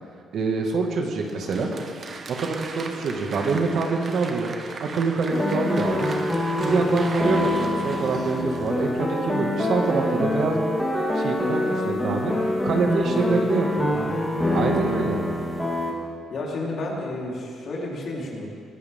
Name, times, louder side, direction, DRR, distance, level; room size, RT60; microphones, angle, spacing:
voice 1, 0.3-1.7 2.3-4.5 4.8-6.1 6.6-10.7 11.1-12.3 12.6-13.9 14.5-15.2, right 4 dB, 65° right, 2 dB, 2.1 m, -25 dB
Applause, 1.2-9.3, right 4 dB, 45° right, 1.2 m, -38 dB
sound 1, 5.3-15.9, left 1 dB, 5° left, 3.5 m, -25 dB
voice 2, 13.1-13.4 14.5-14.7 16.3-18.5, left 2 dB, 60° left, -3 dB, 4.1 m, -32 dB
21.0 x 14.0 x 3.8 m, 2.2 s
cardioid pair, 90°, 0 cm